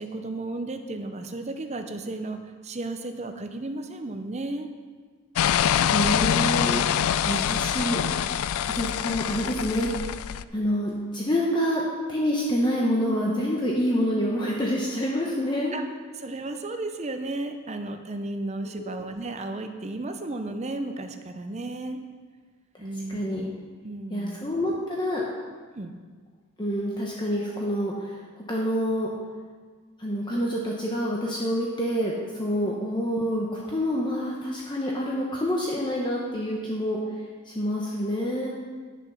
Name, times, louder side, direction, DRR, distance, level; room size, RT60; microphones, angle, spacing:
voice 1, 0.0-4.7 15.7-15.8 16.2-22.0 22.8-23.4 23.8-24.4 25.7-25.9 32.6-32.7, right 2 dB, 30° right, 7 dB, 0.6 m, -34 dB
sound 1, 5.4-10.4, left 9 dB, 80° left, 0.3 m, -25 dB
voice 2, 5.9-8.3 8.6-10.1 10.5-11.8 12.1-15.8 18.8-18.9 22.7-23.4 24.1-25.2 26.6-29.1 30.0-37.0 37.4-38.5, equal, 20° left, -3 dB, 0.9 m, -27 dB
10.5 x 7.0 x 5.7 m, 1.5 s
head